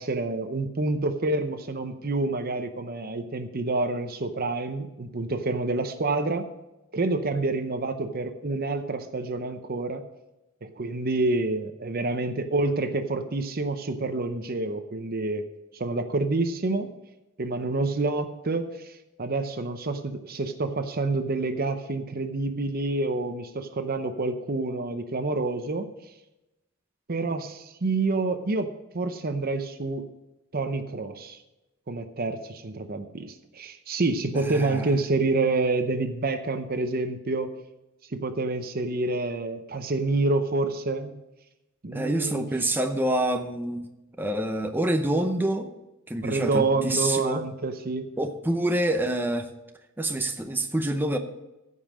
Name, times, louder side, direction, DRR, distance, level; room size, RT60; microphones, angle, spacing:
voice 1, 0.0-6.4 6.9-10.0 10.6-15.4 15.7-16.9 17.4-25.9 27.1-30.0 30.5-31.4 31.9-37.5 38.1-41.2 41.8-42.4 46.2-48.1, right 3 dB, 45° right, 8 dB, 0.7 m, -28 dB
voice 2, 34.3-34.9 41.9-43.8 44.2-45.7 46.1-47.4 48.2-49.5 50.0-51.2, right 1 dB, 10° right, 5 dB, 0.7 m, -27 dB
15.0 x 5.6 x 6.3 m, 0.97 s
head